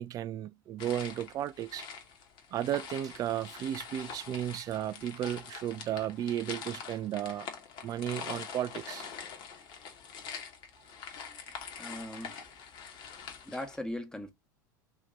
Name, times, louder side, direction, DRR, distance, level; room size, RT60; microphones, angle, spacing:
voice 1, 0.0-1.9 2.5-7.5 7.8-9.1, right 11 dB, 35° right, 0.3 m, -34 dB
sound 1, 0.8-13.8, left 6 dB, 50° left, 1.2 m, -44 dB
voice 2, 11.8-12.4 13.5-14.3, left 1 dB, 5° left, 1.1 m, -39 dB
3.0 x 2.8 x 3.7 m
hypercardioid pair, 80°, 11 cm